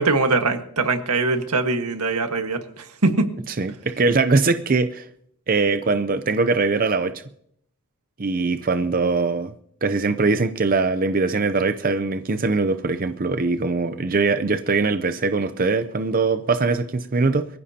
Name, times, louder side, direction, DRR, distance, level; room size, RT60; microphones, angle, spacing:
voice 1, 0.0-3.3, right 3 dB, 90° right, 6 dB, 1.6 m, -22 dB
voice 2, 3.6-5.1 5.5-7.2 8.2-9.6 9.8-17.5, right 3 dB, 40° right, 10 dB, 0.6 m, -22 dB
23.5 x 15.0 x 2.9 m, 0.68 s
head